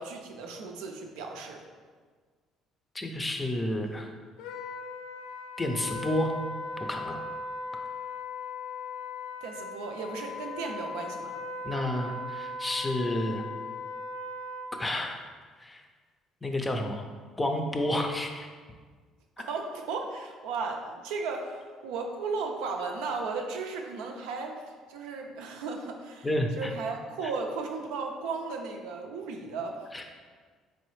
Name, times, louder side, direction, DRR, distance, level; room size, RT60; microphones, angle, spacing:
voice 1, 0.0-1.6 9.4-11.3 19.4-26.3 26.6-29.8, right 4 dB, 85° right, 2 dB, 0.4 m, -35 dB
voice 2, 2.9-4.1 5.6-6.3 6.9-7.2 11.6-13.4 14.8-15.2 15.6-15.8 16.4-17.0 17.4-18.5 26.2-26.7 29.9-30.0, left 1 dB, 20° left, 4 dB, 0.5 m, -30 dB
Wind instrument woodwind instrument, 4.4-14.8, left 3 dB, 80° left, 0.4 m, -38 dB
3.9 x 3.2 x 3.1 m, 1.5 s
supercardioid pair, 85°, 0 cm